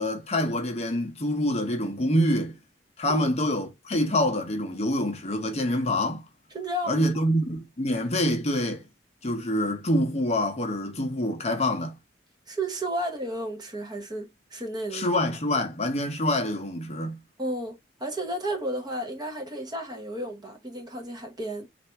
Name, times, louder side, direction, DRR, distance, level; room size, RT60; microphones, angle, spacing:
voice 1, 0.0-2.6 3.0-6.2 6.9-8.8 9.2-11.9 14.9-17.2, left 1 dB, 35° left, 0.8 m, -26 dB
voice 2, 6.5-7.2 12.5-15.2 17.4-21.7, right 1 dB, 20° right, 0.9 m, -33 dB
3.3 x 2.5 x 4.3 m
head